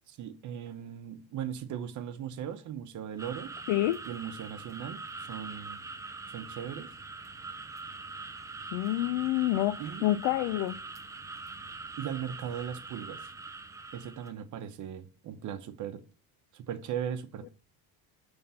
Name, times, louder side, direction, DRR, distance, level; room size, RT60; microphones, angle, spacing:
voice 1, 0.1-3.5 4.0-5.8 6.3-6.9 9.8-10.1 12.0-13.3 13.9-16.0 16.5-17.5, right 9 dB, 45° right, 0.8 m, -38 dB
sound 1, 3.2-14.3, right 3 dB, 10° right, 0.3 m, -43 dB
voice 2, 3.7-4.0 8.7-10.8, left 15 dB, 90° left, 0.5 m, -28 dB
7.0 x 3.5 x 5.5 m
cardioid pair, 145°, 40 cm